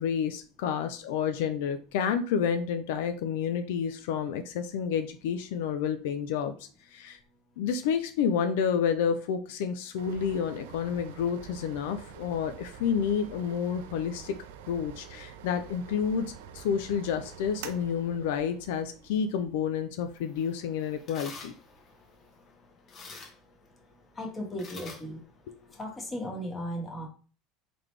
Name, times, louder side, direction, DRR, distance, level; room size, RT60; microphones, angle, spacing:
voice 1, 0.0-6.5 6.9-7.2 7.6-14.3 14.7-21.5, left 7 dB, 80° left, 8 dB, 0.4 m, -29 dB
sound 1, 10.0-22.4, right 8 dB, 85° right, 0.4 m, -47 dB
sound 2, 20.0-26.1, left 4 dB, 40° left, 1.0 m, -50 dB
voice 2, 24.2-25.2 25.8-27.1, equal, 20° left, 0 dB, 1.5 m, -36 dB
3.9 x 3.3 x 3.2 m, 0.38 s
supercardioid pair, 115°, 0 cm